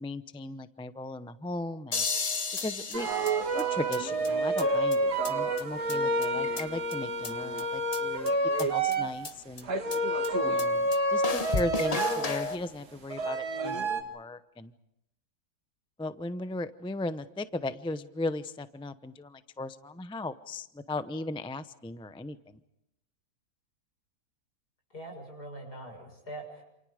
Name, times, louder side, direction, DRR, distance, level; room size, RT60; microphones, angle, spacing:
voice 1, 0.0-2.0 2.6-3.1 3.6-8.3 8.6-9.7 10.4-13.9 14.1-14.7 16.0-19.3 19.6-22.4, left 2 dB, 5° left, 11 dB, 0.4 m, -37 dB
sound 1, 1.9-4.0 4.2-4.3 4.6-4.7 4.9-5.0 5.2-5.3 5.6-5.7 5.9-6.0 6.2-6.9 7.2-7.3 7.6-7.7 7.9-8.0 8.3-8.4 8.6-8.7 8.9-9.0 9.2-9.3 9.6-9.7 9.9-10.0 10.2-10.3 10.6-10.7 10.9-11.0 11.2-12.6, left 4 dB, 30° left, 0.9 m, -32 dB
sound 2, 2.9-9.2 9.6-12.5 13.1-14.0, right 2 dB, 80° right, 2.6 m, -29 dB
voice 2, 24.9-26.6, right 1 dB, 75° left, 3 dB, 7.3 m, -43 dB
28.5 x 28.0 x 5.0 m, 0.83 s
omnidirectional pair, 1.7 m